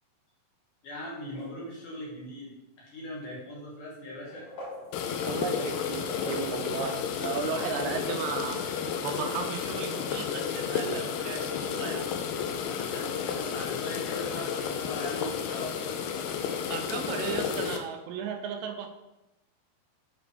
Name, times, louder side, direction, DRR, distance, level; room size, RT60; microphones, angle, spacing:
voice 1, 0.8-4.5 12.6-15.9, left 1 dB, 60° left, -5 dB, 3.2 m, -40 dB
sound 1, 1.0-2.0 3.0-3.1 4.1-7.9, equal, 40° left, 3.1 m, -44 dB
sound 2, 4.9-17.8, left 7 dB, 90° left, 2.6 m, -32 dB
voice 2, 5.2-12.1 16.7-18.9, right 7 dB, 80° right, 4 dB, 2.1 m, -35 dB
7.8 x 5.0 x 3.4 m, 0.93 s
omnidirectional pair, 4.6 m